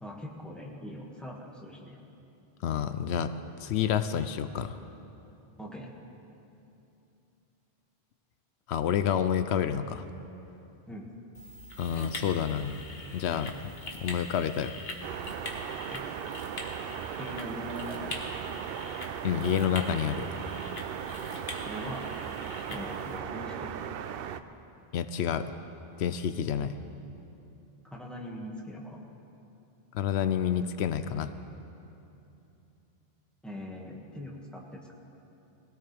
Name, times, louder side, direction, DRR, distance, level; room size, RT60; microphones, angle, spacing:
voice 1, 0.0-2.0 5.6-5.9 10.9-11.1 15.9-16.1 17.2-18.2 21.7-22.2 22.7-23.8 27.8-29.0 33.4-34.9, equal, ahead, -3 dB, 1.9 m, -41 dB
voice 2, 2.6-3.3 3.6-4.8 8.7-10.0 11.8-12.8 13.1-13.7 14.0-14.7 19.2-20.3 24.9-25.5 26.0-26.8 29.9-31.3, left 8 dB, 90° left, 10 dB, 0.9 m, -29 dB
sound 1, 11.3-23.2, left 2 dB, 70° left, 1.7 m, -43 dB
sound 2, 15.0-24.4, right 8 dB, 70° right, 0.7 m, -37 dB
22.0 x 17.0 x 3.5 m, 2.8 s
omnidirectional pair, 1.1 m